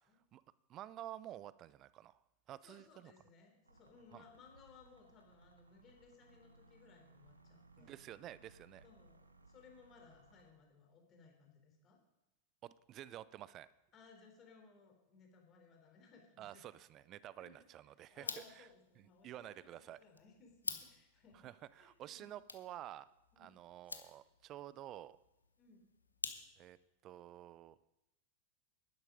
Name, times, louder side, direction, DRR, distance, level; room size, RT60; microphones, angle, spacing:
voice 1, 0.7-2.2 2.5-3.1 4.1-4.2 7.8-8.8 12.6-13.7 16.4-18.3 18.6-18.7 19.0-20.0 21.4-23.1 23.4-25.2 26.6-26.8 27.0-27.8, right 13 dB, 35° right, 18 dB, 0.5 m, -51 dB
voice 2, 2.6-7.9 8.8-12.0 13.9-16.6 17.4-17.6 18.1-21.5 21.8-22.4 23.3-23.6 25.6-25.9, left 5 dB, 30° left, 2 dB, 3.6 m, -63 dB
sound 1, 3.6-10.5, right 3 dB, 80° right, 1.0 m, -65 dB
sound 2, 18.1-26.8, left 3 dB, 80° left, 1.0 m, -50 dB
11.0 x 11.0 x 5.2 m, 0.94 s
figure-of-eight pair, 90°, 0 cm